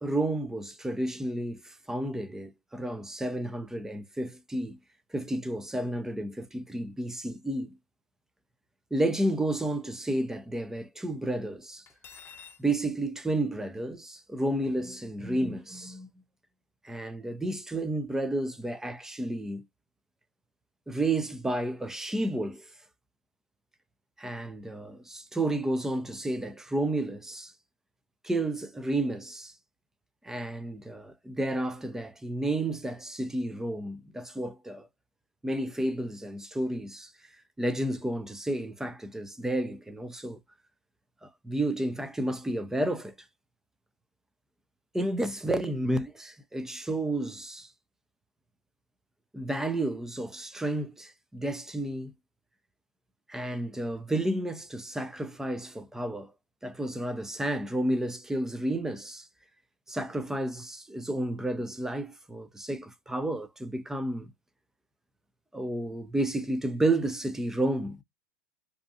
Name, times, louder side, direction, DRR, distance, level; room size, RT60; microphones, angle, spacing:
voice 1, 0.0-4.8 5.1-7.8 8.9-11.8 12.6-16.1 16.8-19.6 20.9-22.7 24.2-27.5 28.2-29.5 30.2-34.9 35.4-37.1 37.6-40.4 41.2-43.1 44.9-47.7 49.3-52.1 53.3-56.3 56.6-59.3 59.9-64.3 65.5-68.0, right 1 dB, 5° right, 0.5 m, -31 dB
Cutlery silverware, 11.9-12.6, left 7 dB, 30° left, 1.0 m, -48 dB
2.6 x 2.3 x 2.6 m
hypercardioid pair, 105°, 8 cm